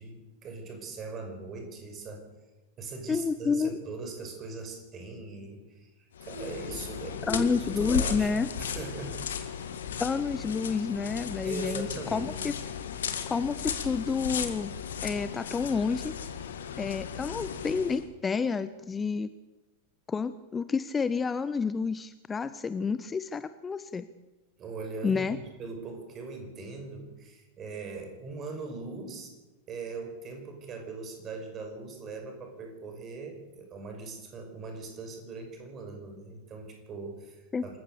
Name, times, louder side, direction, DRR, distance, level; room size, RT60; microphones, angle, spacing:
voice 1, 0.0-2.3 2.8-8.3 8.6-9.3 11.4-12.3 24.6-29.3 29.7-37.8, right 3 dB, 30° right, 4 dB, 5.7 m, -40 dB
voice 2, 3.1-3.7 7.3-8.5 10.0-12.5 13.3-14.7 15.0-16.1 16.8-19.3 20.1-24.1 25.0-25.4 37.5-37.6, left 5 dB, 15° left, 13 dB, 0.7 m, -29 dB
sound 1, 6.1-18.1, left 8 dB, 65° left, 1.8 m, -36 dB
26.5 x 15.0 x 6.7 m, 1.1 s
figure-of-eight pair, 90°, 0 cm